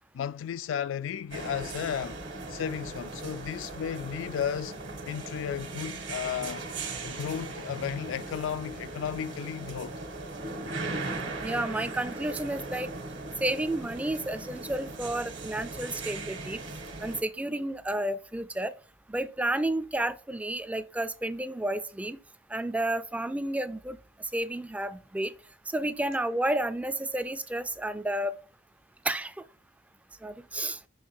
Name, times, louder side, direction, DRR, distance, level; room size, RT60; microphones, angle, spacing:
voice 1, 0.1-2.2 2.5-4.8 5.1-6.7 7.0-9.9, left 8 dB, 85° left, 0.3 m, -34 dB
sound 1, 1.3-17.2, right 3 dB, 65° right, 1.5 m, -38 dB
voice 2, 11.4-12.9 13.4-16.6 17.0-18.7 19.1-22.2 22.5-25.3 25.7-28.3 29.0-29.4 30.2-30.8, right 1 dB, 5° right, 0.3 m, -31 dB
6.3 x 3.6 x 4.6 m
head